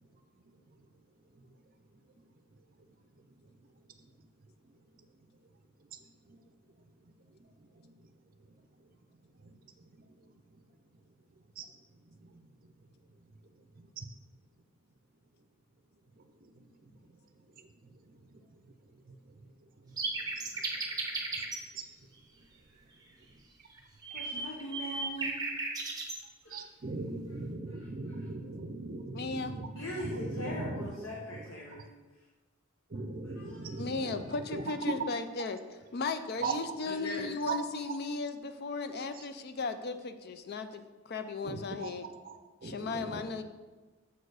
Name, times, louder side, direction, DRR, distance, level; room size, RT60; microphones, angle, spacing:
Nightingale song, 20.0-21.6 23.8-26.2, right 3 dB, 20° right, 0.8 m, -35 dB
voice 1, 24.1-25.4 26.4-26.7 27.7-28.3 29.8-31.9 33.2-33.8 36.8-37.3, equal, 70° left, -3 dB, 1.0 m, -41 dB
voice 2, 26.5-29.7 30.0-30.9 32.9-34.2 34.5-34.6 36.4-36.6 37.5-37.6 41.4-41.9 42.3-42.4 42.6-43.2, right 3 dB, 45° right, 8 dB, 0.5 m, -38 dB
voice 3, 29.1-29.6 33.7-42.1 42.6-43.4, left 4 dB, 50° left, 9 dB, 0.4 m, -36 dB
6.7 x 4.5 x 4.8 m, 1.3 s
head